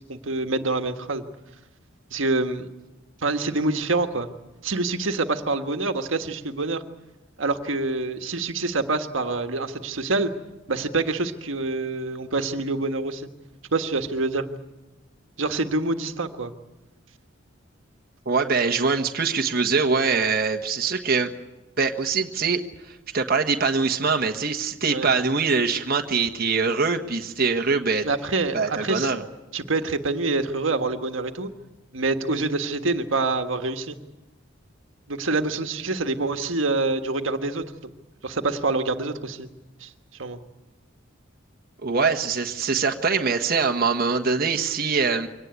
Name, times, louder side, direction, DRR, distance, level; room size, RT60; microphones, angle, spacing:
voice 1, 0.1-1.2 2.1-2.7 3.2-4.3 4.6-6.8 7.4-10.3 10.7-13.3 13.7-14.4 15.4-16.5 24.9-25.1 28.0-29.1 29.5-31.5 31.9-34.0 35.1-37.6 38.2-39.5 39.8-39.9 40.2-40.4, right 3 dB, 80° right, 7 dB, 1.6 m, -26 dB
voice 2, 18.2-21.3 21.8-22.6 22.9-28.1 28.5-29.2 41.8-45.3, right 4 dB, 50° right, 4 dB, 1.4 m, -23 dB
24.0 x 18.5 x 9.6 m, 1.1 s
head